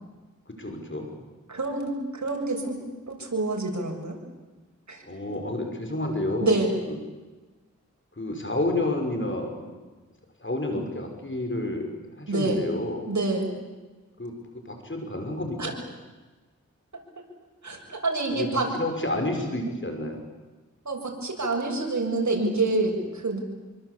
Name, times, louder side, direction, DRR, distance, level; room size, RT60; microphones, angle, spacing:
voice 1, 0.5-1.1 5.0-6.6 6.9-7.0 8.2-9.8 10.4-11.9 12.2-13.1 14.2-15.8 18.3-20.2, left 1 dB, 40° left, 4 dB, 6.3 m, -30 dB
voice 2, 1.5-2.8 3.1-4.2 4.9-5.0 5.3-5.4 6.4-6.8 12.3-12.6 13.1-13.5 15.6-15.7 17.6-18.7 20.8-23.4, right 2 dB, 65° right, 1 dB, 7.2 m, -27 dB
26.5 x 24.0 x 8.6 m, 1.2 s
cardioid pair, 45°, 30 cm